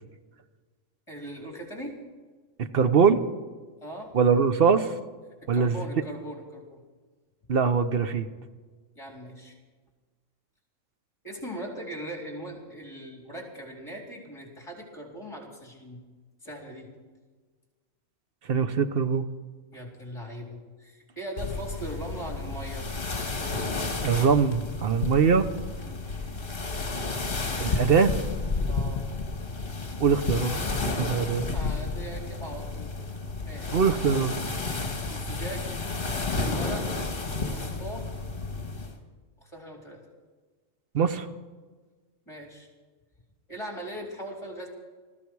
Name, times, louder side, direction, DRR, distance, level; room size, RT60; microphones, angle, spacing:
voice 1, 1.1-2.0 3.8-4.1 5.4-6.8 9.0-9.5 11.2-16.0 16.4-16.9 19.7-22.9 25.7-26.0 28.7-29.0 31.5-32.9 33.4-33.8 35.1-35.7 36.4-36.9 37.4-38.1 39.4-40.0 42.3-42.7 43.5-44.7, right 1 dB, 20° left, 0 dB, 3.9 m, -39 dB
voice 2, 2.7-3.2 4.1-4.9 5.5-5.8 7.5-8.3 18.5-19.3 24.0-25.5 27.6-28.1 30.0-31.4 33.7-34.4 40.9-41.3, right 6 dB, 50° right, 10 dB, 0.9 m, -22 dB
sound 1, 21.4-38.9, left 3 dB, 45° left, 1.8 m, -31 dB
20.5 x 14.5 x 4.7 m, 1.4 s
omnidirectional pair, 1.3 m